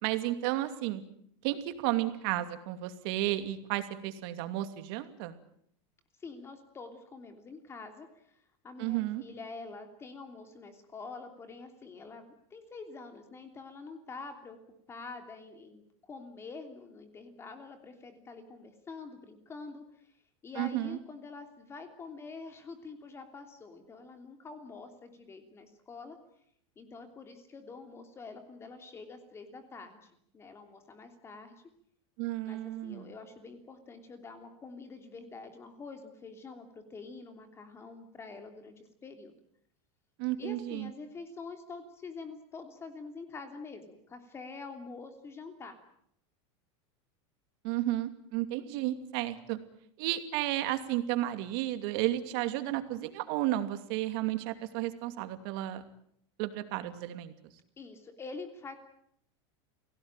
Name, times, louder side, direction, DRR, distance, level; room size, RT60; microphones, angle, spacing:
voice 1, 0.0-1.0 1.4-5.4 8.8-9.2 20.6-21.0 32.2-33.1 40.2-40.9 47.6-49.6 50.0-55.8 56.4-57.3, right 15 dB, 55° right, 10 dB, 2.7 m, -32 dB
voice 2, 6.2-14.6 14.9-20.1 20.4-26.2 26.8-31.5 32.5-39.3 40.4-45.8 57.8-58.8, left 4 dB, 15° left, 7 dB, 3.1 m, -46 dB
29.0 x 18.0 x 9.0 m, 0.70 s
supercardioid pair, 160°, 15 cm